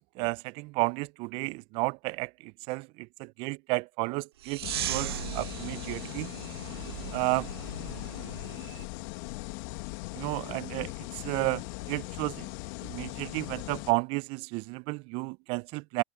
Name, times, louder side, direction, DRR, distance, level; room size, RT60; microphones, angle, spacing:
voice 1, 0.1-6.3 7.1-7.5 10.1-12.5 12.8-16.0, right 26 dB, 45° right, 0.4 m, -32 dB
sound 1, 4.4-8.9, right 13 dB, 75° right, 0.7 m, -38 dB
sound 2, 4.6-13.9, left 25 dB, 55° left, 1.3 m, -39 dB
hypercardioid pair, 110°, 13 cm